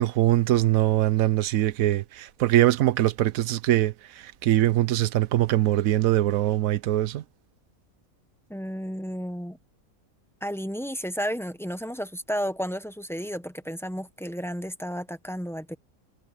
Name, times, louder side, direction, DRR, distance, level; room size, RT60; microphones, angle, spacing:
voice 1, 0.0-7.2, right 14 dB, 75° right, 1.1 m, -22 dB
voice 2, 8.5-9.6 10.4-15.7, equal, 5° left, 0.5 m, -32 dB
omnidirectional pair, 1.5 m